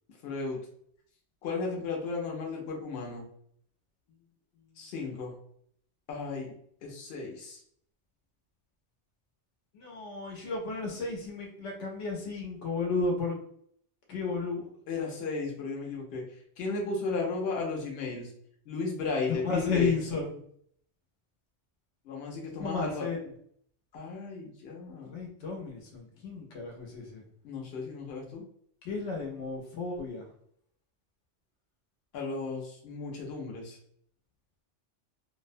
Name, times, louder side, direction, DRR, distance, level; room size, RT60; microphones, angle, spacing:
voice 1, 0.2-0.6 1.4-3.3 4.8-5.4 6.1-7.6 14.9-16.2 16.6-18.3 18.7-19.9 22.0-23.1 23.9-25.2 27.4-28.4 32.1-33.8, left 3 dB, 60° left, -1 dB, 0.9 m, -35 dB
voice 2, 9.7-13.4 14.1-14.7 19.4-20.3 22.6-23.2 25.1-27.2 28.8-30.3, left 4 dB, 85° left, 0 dB, 1.0 m, -33 dB
2.6 x 2.0 x 2.5 m, 0.65 s
omnidirectional pair, 1.2 m